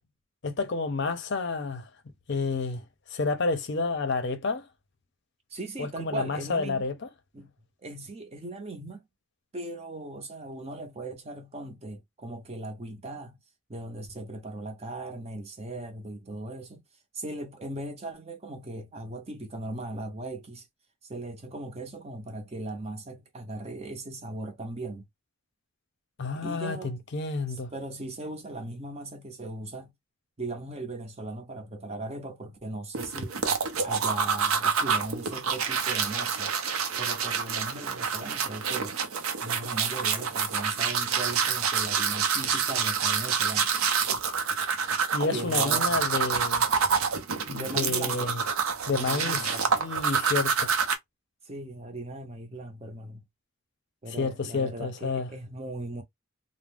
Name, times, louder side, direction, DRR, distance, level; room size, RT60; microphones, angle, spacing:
voice 1, 0.4-1.9 2.3-2.8 3.1-4.6 5.8-7.1 26.2-27.7 45.1-46.7 47.5-48.4 48.9-50.7 54.1-55.3, left 4 dB, 55° left, 0.5 m, -30 dB
voice 2, 5.5-6.8 7.3-7.5 7.8-9.0 9.5-13.4 13.7-16.8 17.1-20.7 21.1-25.1 26.3-27.0 27.5-29.9 30.4-33.3 33.8-36.5 37.0-38.9 39.4-43.7 45.3-46.0 47.6-48.4 48.9-49.6 51.4-53.2 54.0-56.0, right 2 dB, 30° right, 0.6 m, -38 dB
sound 1, 32.9-51.0, right 6 dB, 80° right, 0.6 m, -27 dB
2.3 x 2.0 x 3.4 m
head